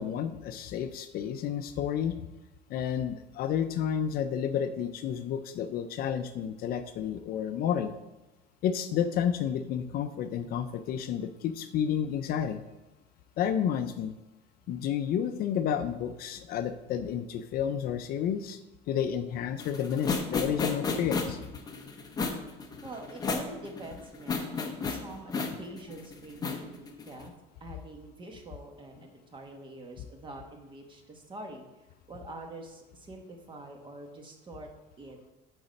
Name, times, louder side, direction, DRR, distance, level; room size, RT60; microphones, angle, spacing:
voice 1, 0.0-2.3 2.7-7.9 8.6-12.6 13.4-14.1 14.7-18.6 18.9-21.4, left 8 dB, 50° left, 10 dB, 0.5 m, -31 dB
sound 1, 19.6-27.2, left 4 dB, 20° left, 0.8 m, -33 dB
voice 2, 22.8-24.6 24.8-27.3 27.6-31.7 32.1-34.7 35.0-35.2, right 2 dB, 25° right, 3 dB, 1.3 m, -45 dB
9.3 x 4.0 x 6.5 m, 1.0 s
cardioid pair, 160°, 21 cm